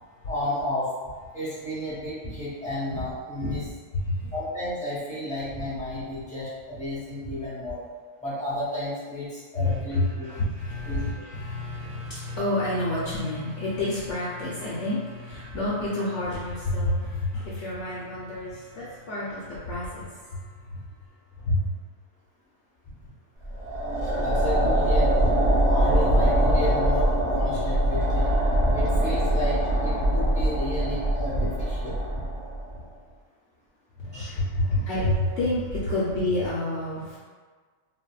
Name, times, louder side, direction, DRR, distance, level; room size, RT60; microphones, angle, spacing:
voice 1, 0.3-0.9 1.3-3.7 4.3-7.8 8.2-10.3 10.8-11.0 24.1-27.1 27.3-28.3 28.5-32.2 34.1-34.3, left 1 dB, 5° left, -11 dB, 0.8 m, -32 dB
voice 2, 3.9-4.3 9.6-20.4 21.5-21.6 34.0-37.2, left 1 dB, 70° left, -8 dB, 0.9 m, -28 dB
sound 1, 23.4-32.7, right 1 dB, 55° right, 1.1 m, -23 dB
3.4 x 2.1 x 2.2 m, 1.5 s
omnidirectional pair, 1.4 m